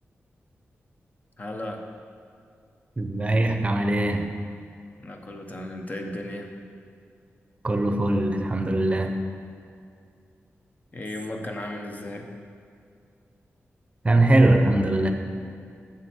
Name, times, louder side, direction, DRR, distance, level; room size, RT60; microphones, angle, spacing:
voice 1, 1.4-1.8 5.0-6.5 10.9-12.3, left 1 dB, 35° left, 3 dB, 0.9 m, -35 dB
voice 2, 3.0-4.3 7.6-9.1 14.0-15.1, right 1 dB, 25° right, 5 dB, 0.7 m, -21 dB
7.7 x 7.2 x 4.3 m, 2.4 s
wide cardioid pair, 85°, 5 cm